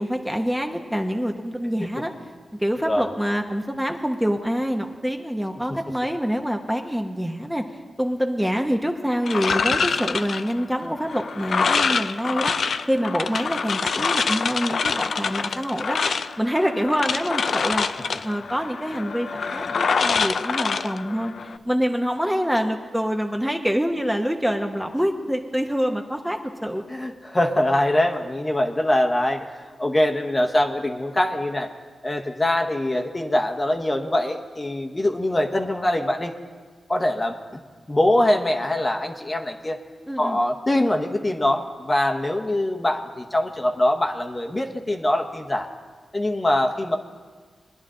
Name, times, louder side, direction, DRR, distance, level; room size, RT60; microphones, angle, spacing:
voice 1, 0.0-2.1 2.6-7.6 8.0-12.5 12.9-16.0 16.4-17.9 18.2-21.3 21.7-26.8 40.1-40.4, equal, 5° right, 3 dB, 0.9 m, -25 dB
sound 1, 9.3-21.6, left 5 dB, 70° left, 0.4 m, -25 dB
voice 2, 26.9-29.5 29.8-31.7 32.0-36.3 36.9-37.4 37.9-39.8 40.2-45.7 46.1-47.0, left 1 dB, 25° left, 3 dB, 1.0 m, -23 dB
20.5 x 10.5 x 3.8 m, 1.5 s
cardioid pair, 80°, 0 cm